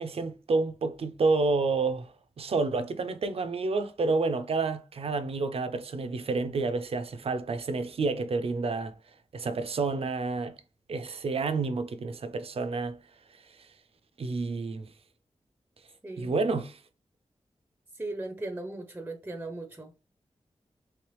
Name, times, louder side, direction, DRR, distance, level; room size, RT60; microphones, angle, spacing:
voice 1, 0.0-2.1 2.4-8.9 9.3-10.6 10.9-13.0 14.2-14.9 16.2-16.8, right 3 dB, 65° right, 0.5 m, -29 dB
voice 2, 17.9-19.9, right 2 dB, 15° right, 0.5 m, -37 dB
3.3 x 3.2 x 3.0 m
wide cardioid pair, 95°, 11 cm